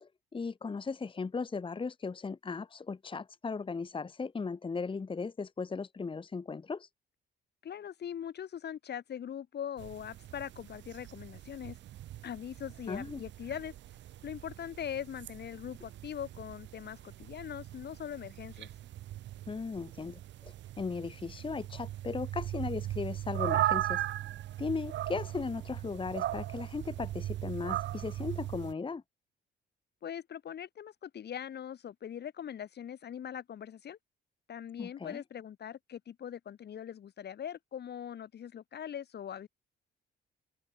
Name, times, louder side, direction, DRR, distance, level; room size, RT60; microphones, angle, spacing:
voice 1, 0.0-6.9 12.9-13.2 19.5-24.0 24.6-29.0 34.8-35.2, left 4 dB, 25° left, 1.2 m, -37 dB
voice 2, 7.6-11.8 12.2-13.7 14.2-18.7 30.0-34.0 34.5-39.5, left 9 dB, 55° left, 1.8 m, -41 dB
sound 1, 9.8-28.7, right 13 dB, 65° right, 0.6 m, -38 dB
open air
cardioid pair, 90°, 20 cm